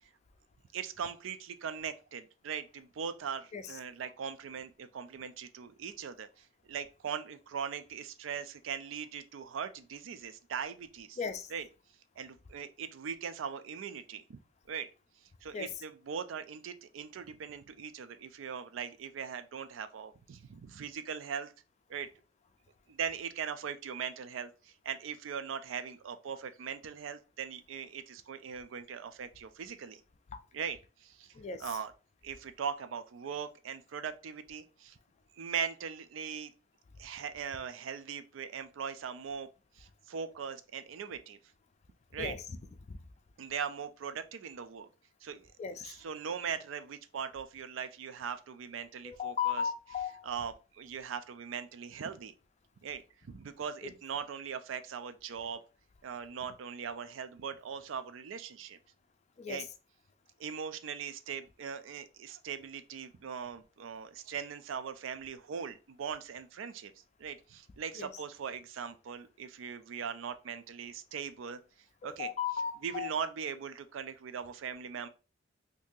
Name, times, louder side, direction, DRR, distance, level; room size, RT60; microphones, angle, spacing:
voice 1, 0.7-6.3 6.7-11.2 11.5-11.7 12.2-14.4 14.7-14.9 15.4-21.5 21.9-22.1 22.9-30.0 30.5-31.3 31.6-31.9 32.2-35.0 35.4-36.5 37.0-39.5 39.8-41.4 42.1-42.3 43.4-44.9 45.2-45.5 45.8-49.6 50.2-52.3 52.8-55.6 56.0-58.8 59.5-59.7 60.4-66.9 67.2-71.6 72.0-72.3 72.8-75.1, right 7 dB, 80° right, 0.4 m, -40 dB
voice 2, 11.2-11.5 15.5-15.7 30.3-30.4 31.3-31.7 42.2-42.4 42.9-43.0 45.6-45.9 49.0-50.3 59.4-59.7 68.0-68.1 72.0-73.1, left 7 dB, 35° left, 0.4 m, -36 dB
3.7 x 2.7 x 2.6 m
head